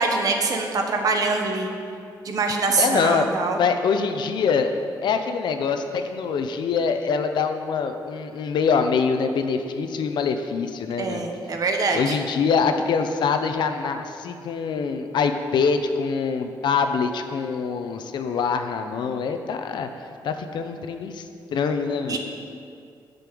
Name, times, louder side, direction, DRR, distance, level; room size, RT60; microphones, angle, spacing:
voice 1, 0.0-1.7 2.2-3.6 11.0-12.2 22.1-22.2, right 3 dB, 50° right, 3 dB, 1.2 m, -24 dB
voice 2, 2.8-3.3 3.6-4.7 5.0-11.3 11.9-19.9 20.2-21.2 21.5-22.2, left 5 dB, 75° left, 7 dB, 0.8 m, -24 dB
10.5 x 5.4 x 7.7 m, 2.4 s
wide cardioid pair, 165°, 8 cm